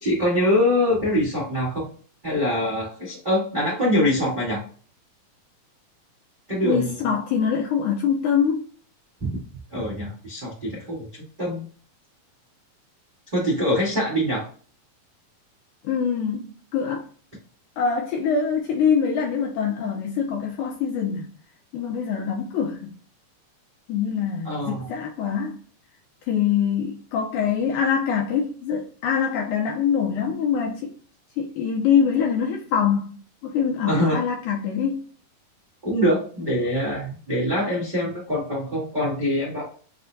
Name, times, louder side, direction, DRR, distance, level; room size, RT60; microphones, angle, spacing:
voice 1, 0.0-1.9 2.2-4.6 6.5-6.9 9.2-9.4 9.7-11.6 13.3-14.5 24.4-24.9 33.9-34.2 35.8-39.6, left 1 dB, 75° right, 0.4 m, -24 dB
voice 2, 6.6-8.7 15.8-17.1 17.8-21.3 21.7-22.9 23.9-25.6 26.3-30.9 31.4-33.2 33.4-35.1, left 7 dB, 85° left, 1.8 m, -24 dB
5.7 x 2.1 x 2.6 m
omnidirectional pair, 4.0 m